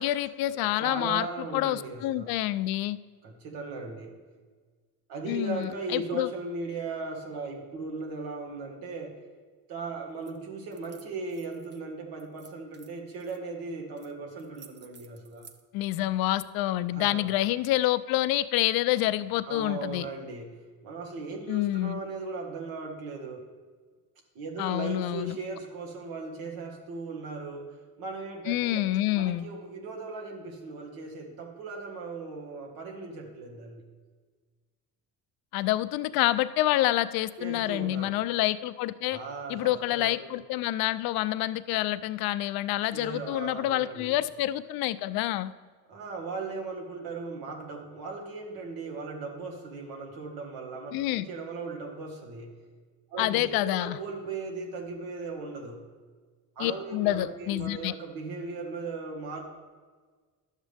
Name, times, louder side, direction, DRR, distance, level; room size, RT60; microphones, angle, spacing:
voice 1, 0.0-1.3 1.5-3.0 5.3-6.3 15.7-20.1 21.5-22.0 24.6-25.4 28.5-29.5 35.5-39.2 39.5-45.5 50.9-51.3 53.2-54.0 56.6-57.9, left 15 dB, 75° left, 14 dB, 0.5 m, -27 dB
voice 2, 0.5-2.3 3.2-4.2 5.1-9.2 9.7-15.5 16.9-17.3 19.5-23.4 24.4-28.9 29.2-33.9 37.4-38.1 39.1-40.3 42.9-44.2 45.9-52.6 53.1-55.8 56.6-59.4, right 3 dB, 75° right, 1 dB, 1.7 m, -38 dB
sound 1, 10.2-10.4 10.7-11.8 12.2-13.4 14.0-14.1 14.4-15.6, right 6 dB, 30° right, 0.5 m, -54 dB
11.5 x 7.4 x 3.4 m, 1.5 s
cardioid pair, 145°, 36 cm